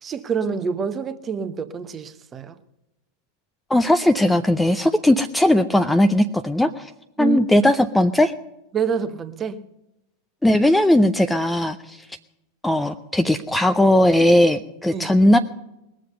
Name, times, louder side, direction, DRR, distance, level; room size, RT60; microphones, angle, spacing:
voice 1, 0.0-2.6 7.2-7.4 8.7-9.6 14.9-15.1, right 6 dB, 25° right, 1.0 m, -26 dB
voice 2, 3.7-6.9 7.2-8.3 10.4-12.0 12.6-15.4, left 1 dB, 5° left, 0.6 m, -18 dB
20.5 x 7.6 x 6.6 m
figure-of-eight pair, 90°, 0 cm